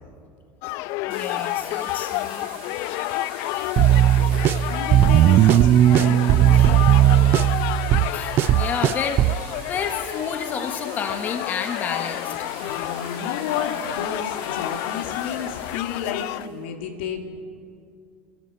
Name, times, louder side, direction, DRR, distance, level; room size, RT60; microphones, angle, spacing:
sound 1, 0.6-16.5, left 18 dB, 60° left, 0.4 m, -30 dB
voice 1, 1.1-2.5 6.5-6.7 8.1-12.3, left 6 dB, 30° left, 5 dB, 1.7 m, -30 dB
sound 2, 1.1-16.6, right 8 dB, 85° right, 2.7 m, -44 dB
sound 3, 3.8-9.4, right 12 dB, 40° right, 0.4 m, -17 dB
voice 2, 4.7-6.9 12.6-17.3, left 7 dB, 90° left, 3 dB, 2.5 m, -32 dB
26.0 x 13.5 x 7.4 m, 2.4 s
supercardioid pair, 140°, 6 cm